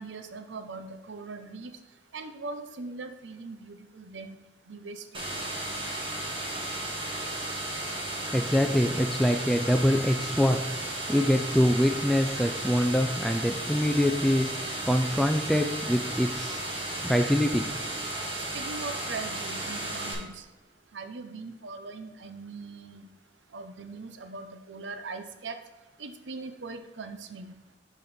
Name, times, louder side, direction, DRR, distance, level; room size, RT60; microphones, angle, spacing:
voice 1, 0.0-1.7 2.1-4.4 4.7-5.4 18.4-20.4 20.9-23.0 23.5-25.6 26.0-27.5, right 3 dB, 85° right, 8 dB, 0.7 m, -40 dB
sound 1, 5.1-20.1, right 1 dB, 30° right, 1.6 m, -34 dB
voice 2, 8.3-10.6 11.1-14.5 14.9-16.6 17.0-17.6, equal, ahead, 4 dB, 0.3 m, -24 dB
6.6 x 5.1 x 4.2 m, 1.2 s
head